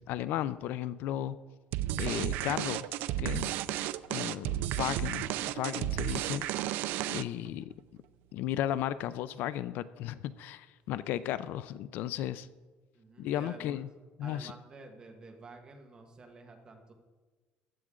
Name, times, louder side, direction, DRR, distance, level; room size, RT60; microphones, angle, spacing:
voice 1, 0.0-1.4 1.9-2.9 3.2-3.5 4.1-6.7 7.1-7.7 8.3-12.5 13.2-13.9 14.2-14.5, left 12 dB, 65° left, 0.4 m, -35 dB
sound 1, 1.7-7.5, right 14 dB, 75° right, 0.4 m, -33 dB
voice 2, 12.9-13.8 14.2-16.9, right 3 dB, 25° right, 1.5 m, -50 dB
15.5 x 10.5 x 3.7 m
cardioid pair, 165°, 3 cm